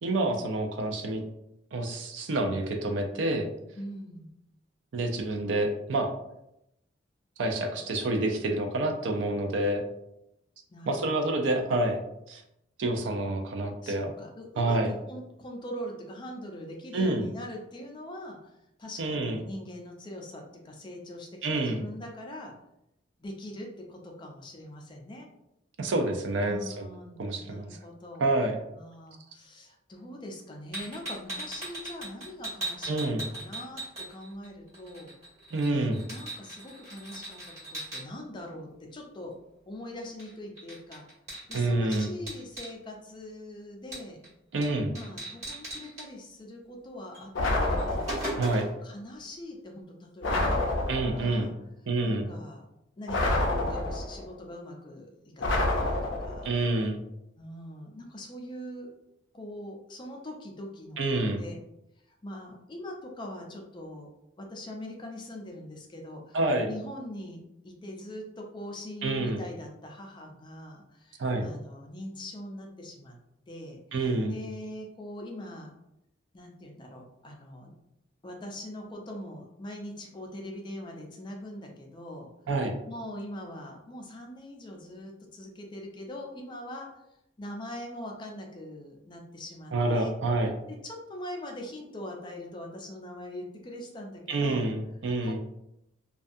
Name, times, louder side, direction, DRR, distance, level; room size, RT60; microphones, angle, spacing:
voice 1, 0.0-1.2 1.7-3.5 4.9-6.1 7.4-9.8 10.9-12.0 12.3-12.4 12.8-14.1 14.6-14.9 16.9-17.2 19.0-19.4 21.4-21.8 25.8-26.9 27.2-27.7 28.2-28.6 32.9-33.2 35.5-36.0 41.5-42.1 44.5-44.9 48.4-48.7 50.9-51.5 51.9-52.3 56.4-57.0 61.0-61.4 66.3-66.7 69.0-69.4 71.2-71.5 73.9-74.3 82.5-82.7 89.7-90.5 94.3-95.4, right 2 dB, 75° right, 4 dB, 0.4 m, -28 dB
voice 2, 3.8-4.3 10.7-11.4 13.8-22.5 23.2-25.3 26.4-28.2 28.7-33.1 33.3-35.2 36.1-37.4 37.7-39.3 39.7-41.0 41.5-44.2 44.9-48.1 48.8-50.8 51.1-51.5 52.0-52.7 53.0-55.1 55.4-56.5 57.4-58.9 59.3-61.6 62.1-64.1 64.4-66.4 66.6-73.2 73.5-75.7 76.3-77.7 78.2-82.3 82.9-86.9 87.4-90.1 90.7-94.6 95.2-95.4, left 1 dB, 25° left, 1 dB, 0.4 m, -42 dB
sound 1, 30.7-34.5 34.7-38.0 40.2-40.3 40.6-42.7 43.9-44.3 44.6-44.7 44.9-46.0 47.1-47.3 47.6-48.8, right 1 dB, 35° right, 1.4 m, -38 dB
sound 2, 47.3-48.4 50.2-51.3 53.1-54.2 55.4-56.5, left 2 dB, 80° left, 0.5 m, -28 dB
2.5 x 2.3 x 2.5 m, 0.83 s
head